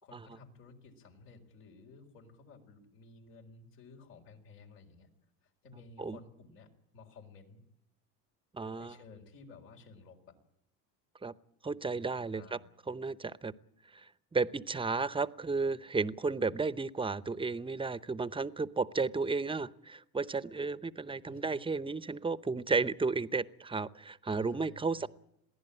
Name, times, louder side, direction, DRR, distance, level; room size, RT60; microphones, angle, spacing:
voice 1, 0.0-5.1 5.4-7.6 8.8-10.3 12.3-12.7 21.2-21.6 24.3-25.1, left 4 dB, 85° left, 1 dB, 4.5 m, -55 dB
voice 2, 8.5-8.9 11.2-11.3 11.6-12.6 12.9-13.5 14.3-25.1, right 4 dB, 10° right, 16 dB, 0.7 m, -33 dB
22.5 x 16.0 x 9.0 m, 0.78 s
hypercardioid pair, 80°, 45 cm